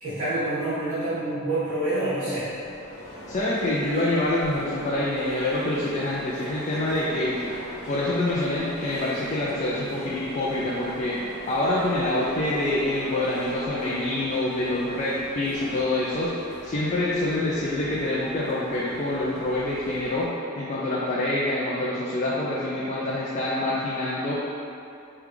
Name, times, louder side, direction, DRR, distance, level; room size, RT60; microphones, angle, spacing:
voice 1, 0.0-2.5, right 2 dB, 40° right, -12 dB, 0.9 m, -27 dB
sound 1, 2.5-20.2, left 1 dB, 85° left, 0.7 m, -40 dB
voice 2, 3.3-7.4 7.9-11.2 11.5-20.3 20.6-24.3, left 1 dB, 35° left, -6 dB, 0.4 m, -26 dB
4.8 x 2.3 x 3.4 m, 2.7 s
head